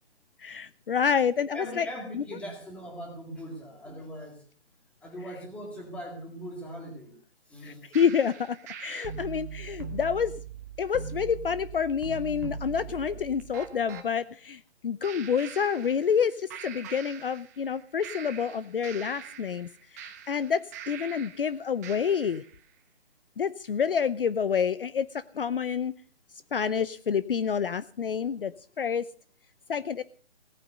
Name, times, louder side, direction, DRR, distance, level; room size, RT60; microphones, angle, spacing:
voice 1, 0.4-1.9 2.1-2.2 7.6-10.3 10.8-19.7 20.0-22.4 23.4-25.1 25.4-25.9 26.5-28.5 28.8-29.0 29.7-30.0, left 7 dB, 55° left, 16 dB, 0.7 m, -28 dB
voice 2, 1.5-4.4 5.0-7.2 7.5-8.0 13.1-13.2 28.7-28.8, equal, 5° left, 2 dB, 2.1 m, -40 dB
sound 1, 7.9-14.1 15.0-16.3 16.5-17.7 18.0-21.5 21.8-22.5, right 7 dB, 15° right, 1.1 m, -41 dB
17.5 x 9.3 x 6.6 m, 0.43 s
hypercardioid pair, 165°, 34 cm